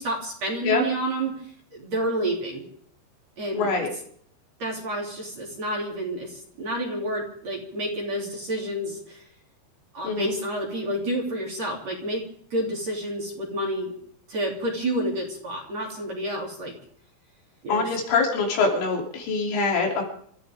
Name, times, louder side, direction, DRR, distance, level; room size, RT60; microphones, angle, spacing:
voice 1, 0.0-1.4 1.7-2.6 3.4-3.7 4.6-9.2 9.9-12.2 12.5-13.9 14.3-16.7 17.6-18.0, right 1 dB, 40° right, -1 dB, 3.9 m, -29 dB
voice 2, 3.5-3.9 10.0-10.4 17.7-20.0, left 4 dB, 80° left, 0 dB, 5.6 m, -24 dB
28.0 x 14.0 x 3.6 m, 0.63 s
omnidirectional pair, 5.5 m